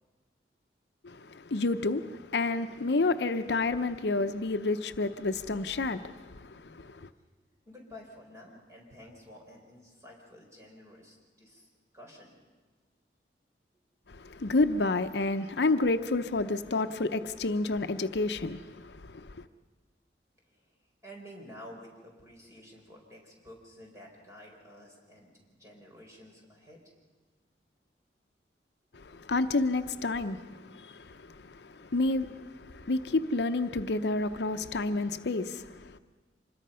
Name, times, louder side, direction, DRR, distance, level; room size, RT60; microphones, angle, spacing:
voice 1, 1.0-7.1 14.1-19.5 28.9-36.0, left 3 dB, 70° left, 0.7 m, -30 dB
voice 2, 7.7-11.7 11.9-12.3 20.5-20.6 21.0-25.3 25.6-26.8, equal, 15° right, 4.5 m, -51 dB
25.5 x 21.0 x 5.6 m
head